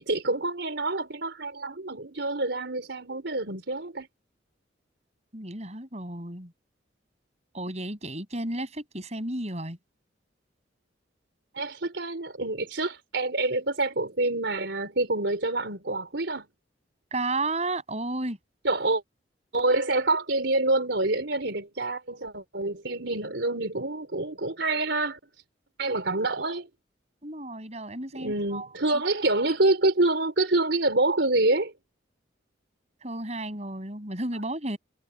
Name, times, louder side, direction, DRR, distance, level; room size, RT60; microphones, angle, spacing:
voice 1, 0.0-4.1 11.5-16.4 18.6-19.0 19.5-25.2 25.8-26.7 28.1-31.7, right 2 dB, 75° right, 3.8 m, -27 dB
voice 2, 5.3-6.5 7.5-9.8 17.1-18.4 27.2-29.0 33.0-34.8, right 2 dB, 35° right, 7.9 m, -33 dB
head